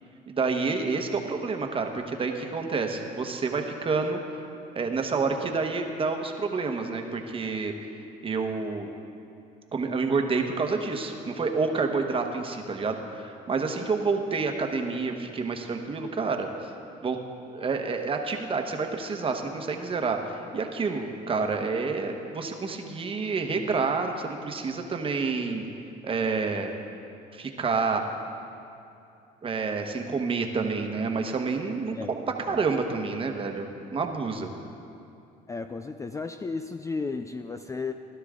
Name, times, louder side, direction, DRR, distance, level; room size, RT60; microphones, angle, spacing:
voice 1, 0.3-4.5 4.7-7.7 8.2-8.9 9.7-16.5 17.0-17.2 17.5-25.6 26.0-26.7 27.3-28.0 29.4-34.5, right 4 dB, 30° right, 4 dB, 1.2 m, -28 dB
voice 2, 35.5-37.9, left 4 dB, 20° left, 8 dB, 0.4 m, -34 dB
17.0 x 11.5 x 3.7 m, 2.6 s
cardioid pair, 110°, 17 cm